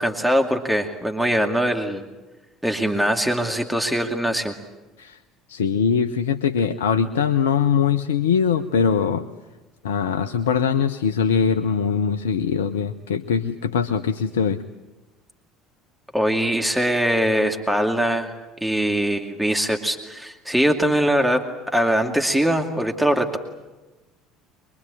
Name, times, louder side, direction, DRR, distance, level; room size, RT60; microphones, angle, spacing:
voice 1, 0.0-2.0 2.6-4.5 16.1-18.3 18.6-21.4 21.7-23.4, equal, 5° right, 4 dB, 2.3 m, -22 dB
voice 2, 5.5-9.3 9.8-14.6, left 7 dB, 80° left, 9 dB, 0.7 m, -22 dB
24.0 x 23.5 x 8.5 m, 1.1 s
figure-of-eight pair, 65°, 0 cm